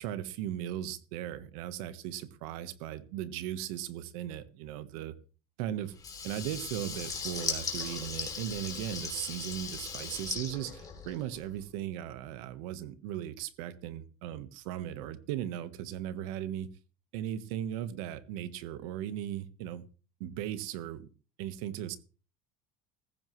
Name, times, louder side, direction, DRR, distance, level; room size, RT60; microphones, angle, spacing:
voice 1, 0.0-5.1 5.6-5.9 6.2-16.7 17.1-19.8 20.2-21.0 21.4-22.0, right 11 dB, 85° right, 1.3 m, -37 dB
Water tap faucet / Liquid, 6.0-11.5, left 5 dB, 20° left, 3.4 m, -38 dB
15.0 x 14.5 x 3.2 m
cardioid pair, 155°, 17 cm